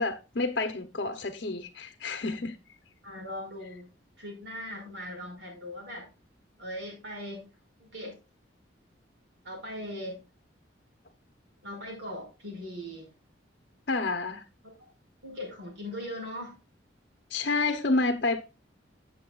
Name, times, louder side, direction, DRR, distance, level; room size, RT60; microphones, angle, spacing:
voice 1, 0.0-2.6 13.9-14.4 17.3-18.4, left 3 dB, 60° left, 0.9 m, -29 dB
voice 2, 3.0-3.9 4.2-6.1 6.6-7.5 7.8-8.1 9.4-10.2 11.6-13.1 14.8-14.9 15.2-16.6, left 1 dB, 70° right, 5.7 m, -39 dB
14.5 x 7.5 x 2.4 m
head